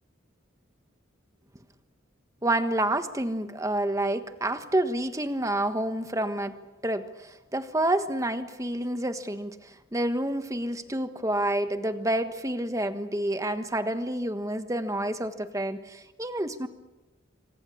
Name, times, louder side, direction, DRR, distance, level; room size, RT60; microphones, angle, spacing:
voice 1, 2.4-6.6 6.8-16.7, right 1 dB, 15° right, 9 dB, 1.4 m, -29 dB
27.5 x 25.5 x 7.1 m, 1.1 s
head